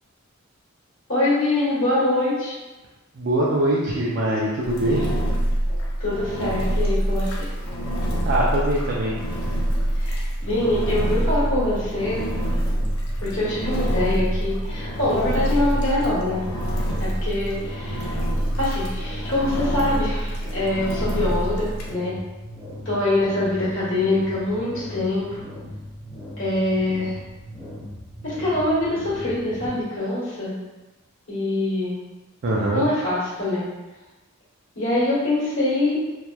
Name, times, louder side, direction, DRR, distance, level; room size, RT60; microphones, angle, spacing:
voice 1, 1.1-2.5 6.0-7.5 9.9-12.2 13.2-16.4 17.0-18.2 18.6-22.2 22.8-25.4 26.4-27.2 28.2-30.5 31.3-32.0 32.7-33.7 34.7-36.0, left 2 dB, 65° left, -10 dB, 1.2 m, -24 dB
voice 2, 3.1-5.2 8.2-9.2 32.4-32.8, right 1 dB, 55° right, -5 dB, 0.4 m, -22 dB
Engine, 4.6-21.9, right 1 dB, 85° left, 0.5 m, -26 dB
sound 1, 10.4-29.7, left 1 dB, 15° left, 0.9 m, -38 dB
2.8 x 2.1 x 2.2 m, 1.1 s
head